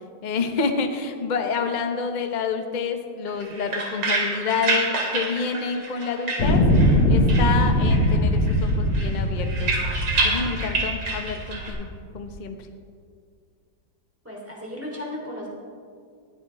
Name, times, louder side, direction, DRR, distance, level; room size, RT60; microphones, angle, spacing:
voice 1, 0.2-6.7 7.1-9.7 10.2-12.6, left 5 dB, 40° left, 5 dB, 0.6 m, -28 dB
sound 1, 3.3-7.0 7.3-8.2 8.4-11.7, right 3 dB, 75° right, 3.2 m, -28 dB
sound 2, 6.4-11.7 12.4-12.5, left 1 dB, 75° left, 2.4 m, -21 dB
voice 2, 14.2-15.5, left 1 dB, 5° right, -4 dB, 3.3 m, -35 dB
19.0 x 13.5 x 3.5 m, 2.2 s
omnidirectional pair, 2.3 m